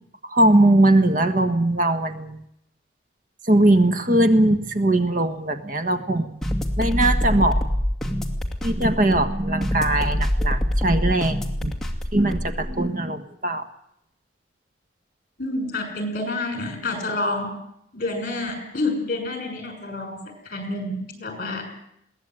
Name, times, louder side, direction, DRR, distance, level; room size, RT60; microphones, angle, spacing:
voice 1, 0.3-2.4 3.5-6.4 6.8-7.6 8.6-11.7 12.1-13.6, right 1 dB, 45° right, 9 dB, 1.5 m, -20 dB
sound 1, 6.4-12.7, equal, ahead, 2.4 m, -25 dB
voice 2, 15.4-17.6 17.9-21.7, left 2 dB, 50° left, 6 dB, 6.3 m, -28 dB
21.5 x 18.0 x 9.1 m, 0.76 s
head